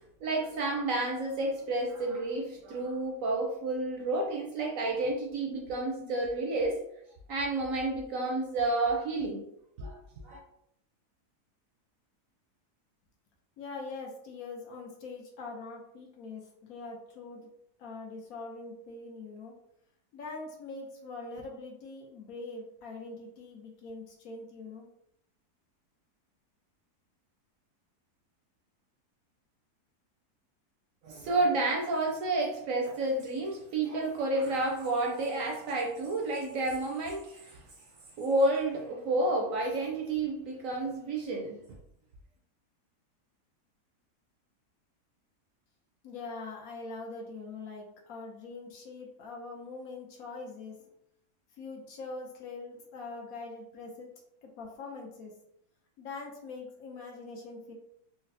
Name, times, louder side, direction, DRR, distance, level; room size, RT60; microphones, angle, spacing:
voice 1, 0.2-6.8 7.3-9.4 9.8-10.0 10.2-10.4 31.0-37.6 38.2-41.6, right 2 dB, 70° right, 0 dB, 0.8 m, -30 dB
voice 2, 13.6-17.5 17.8-19.5 20.1-24.9 46.0-50.9 51.5-54.1 54.4-55.3 56.0-57.7, left 3 dB, 70° left, 0 dB, 1.0 m, -43 dB
3.9 x 2.0 x 2.6 m, 0.74 s
omnidirectional pair, 1.7 m